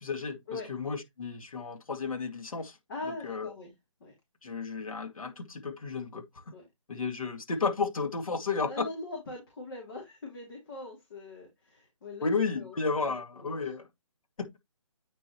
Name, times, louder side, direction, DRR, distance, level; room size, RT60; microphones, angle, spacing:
voice 1, 0.0-2.8 3.2-3.5 4.4-6.2 6.9-8.9 12.2-13.9 14.4-14.5, left 4 dB, 80° left, 2.2 m, -32 dB
voice 2, 2.9-3.7 4.0-4.1 6.5-6.7 8.6-12.2 12.5-12.8 13.1-13.7, left 2 dB, 40° left, 2.8 m, -42 dB
9.1 x 4.8 x 3.0 m
hypercardioid pair, 170°, 17 cm